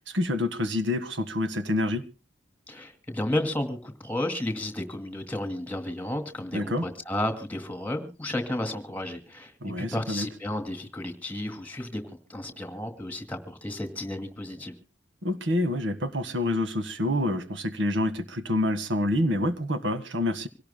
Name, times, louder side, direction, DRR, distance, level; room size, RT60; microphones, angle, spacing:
voice 1, 0.0-2.0 6.5-6.9 9.6-10.3 15.2-20.5, left 1 dB, 70° right, 1.6 m, -27 dB
voice 2, 2.7-9.5 9.8-12.0 12.3-14.7, left 1 dB, 10° left, 2.3 m, -32 dB
26.0 x 17.5 x 2.2 m
head